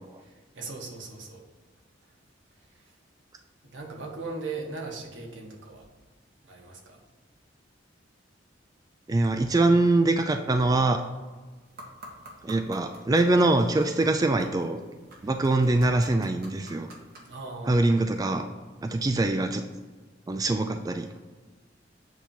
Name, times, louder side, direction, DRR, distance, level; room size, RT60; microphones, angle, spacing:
voice 1, 0.2-1.4 2.7-2.9 3.7-5.9 6.4-7.0 17.3-17.8, right 3 dB, 80° right, -1 dB, 1.4 m, -39 dB
voice 2, 9.1-11.0 12.4-14.8 15.2-16.9 17.7-18.4 18.8-19.6 20.3-21.1, right 2 dB, 20° right, 6 dB, 0.3 m, -23 dB
sound 1, 11.7-17.3, right 1 dB, 55° right, 1.6 m, -49 dB
8.2 x 2.9 x 5.5 m, 1.3 s
head